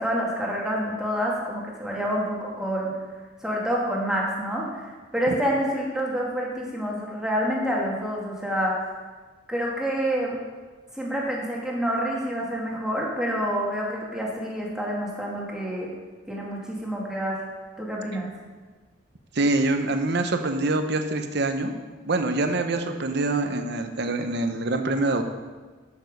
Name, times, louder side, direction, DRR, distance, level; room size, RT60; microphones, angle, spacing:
voice 1, 0.0-2.9 3.4-4.8 5.1-8.8 9.5-10.4 10.9-15.9 16.3-17.4 17.8-18.3, equal, 5° right, -4 dB, 2.1 m, -27 dB
voice 2, 19.3-21.7 22.0-25.2, right 2 dB, 60° right, 6 dB, 0.9 m, -25 dB
11.0 x 7.1 x 5.3 m, 1.4 s
head